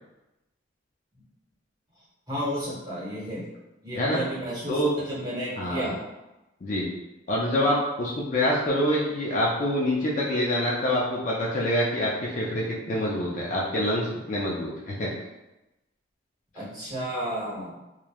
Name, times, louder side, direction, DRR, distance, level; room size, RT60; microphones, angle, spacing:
voice 1, 2.3-3.4 3.8-6.0 16.5-17.7, equal, 20° right, -8 dB, 0.9 m, -32 dB
voice 2, 5.6-5.9 6.6-6.9 7.3-15.1, equal, 40° left, -4 dB, 0.4 m, -26 dB
3.1 x 2.0 x 2.3 m, 0.97 s
head